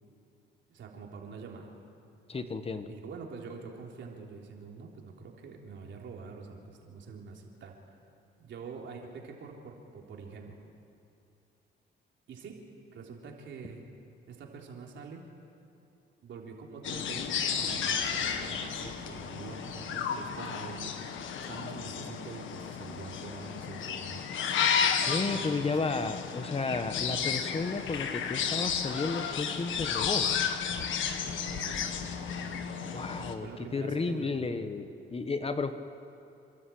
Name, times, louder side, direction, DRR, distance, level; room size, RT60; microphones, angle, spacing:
voice 1, 0.7-1.7 2.9-7.8 8.4-10.5 12.3-12.6 12.9-13.8 14.3-15.3 16.2-20.9 21.5-24.2 25.3-25.8 31.2-31.9 33.4-34.5, right 5 dB, 70° right, 0 dB, 3.6 m, -45 dB
voice 2, 2.3-2.9 25.1-30.3 32.8-35.7, left 4 dB, 30° left, 9 dB, 1.5 m, -33 dB
sound 1, 16.8-33.3, left 7 dB, 75° left, 1.6 m, -32 dB
29.0 x 13.0 x 8.7 m, 2.7 s
cardioid pair, 90°, 20 cm